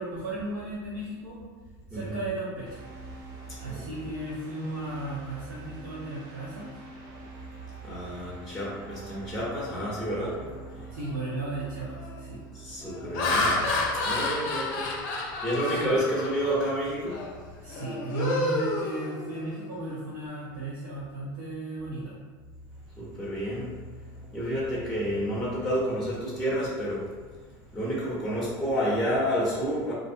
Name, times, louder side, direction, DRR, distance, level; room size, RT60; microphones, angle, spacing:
voice 1, 0.0-1.4 1.9-2.7 3.6-6.7 10.9-12.4 15.6-16.0 17.6-22.1, right 2 dB, 90° right, -9 dB, 0.7 m, -35 dB
sound 1, 2.6-14.7, right 4 dB, 45° right, 0.6 m, -45 dB
voice 2, 3.5-3.8 7.8-10.4 10.7-10.9 12.5-17.2 17.7-17.8 23.0-23.7 24.0-27.1 27.7-29.9, equal, 5° left, -7 dB, 0.6 m, -30 dB
Laughter, 11.0-11.3 11.9-12.2 12.8-16.6 17.1-17.3 17.7-19.6, left 2 dB, 70° left, 0.5 m, -30 dB
2.4 x 2.0 x 2.6 m, 1.5 s
supercardioid pair, 125°, 11 cm